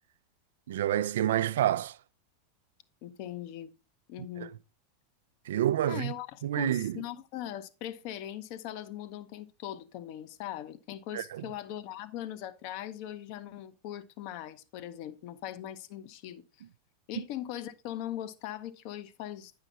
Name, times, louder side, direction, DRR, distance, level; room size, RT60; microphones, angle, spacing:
voice 1, 0.7-2.0 4.4-4.5 5.5-6.1 6.4-7.0 11.1-11.4, right 12 dB, 70° right, 0.4 m, -28 dB
voice 2, 3.0-3.7 4.1-4.5 5.8-16.4 17.1-19.5, left 12 dB, 55° left, 0.8 m, -40 dB
9.9 x 5.7 x 3.8 m
hypercardioid pair, 90°, 0 cm